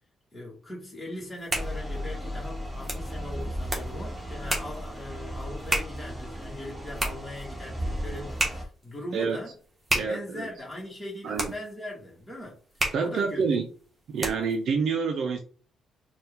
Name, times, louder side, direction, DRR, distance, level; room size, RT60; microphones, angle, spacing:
voice 1, 0.3-9.5 9.9-12.6 13.0-13.4, left 1 dB, 15° left, 1.6 m, -40 dB
sound 1, 1.2-14.6, right 1 dB, 20° right, 1.3 m, -35 dB
sound 2, 1.5-8.6, equal, 5° right, 1.1 m, -35 dB
voice 2, 9.9-10.5 11.2-11.5 12.9-13.7 14.1-15.4, right 5 dB, 65° right, 0.5 m, -27 dB
4.2 x 2.4 x 3.5 m
cardioid pair, 90°, 0 cm